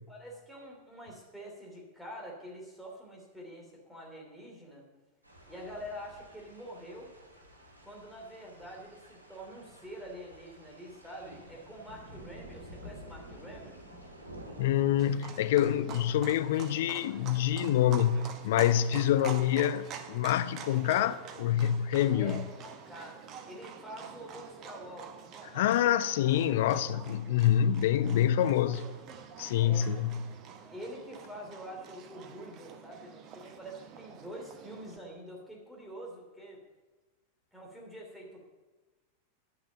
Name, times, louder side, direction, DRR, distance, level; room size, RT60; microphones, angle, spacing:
voice 1, 0.1-4.9 5.5-7.1 7.8-13.8 22.2-23.2 23.5-25.3 26.6-27.0 29.6-29.9 30.7-36.6 37.5-38.5, equal, ahead, 3.1 m, -46 dB
sound 1, 5.2-15.1, equal, 80° right, 2.5 m, -51 dB
voice 2, 14.6-22.5 25.5-28.9 29.4-30.2, left 11 dB, 55° left, 0.4 m, -26 dB
Livestock farm animals working animals, 15.0-35.0, right 7 dB, 35° right, 1.0 m, -47 dB
10.5 x 6.2 x 7.4 m
figure-of-eight pair, 90°, 0 cm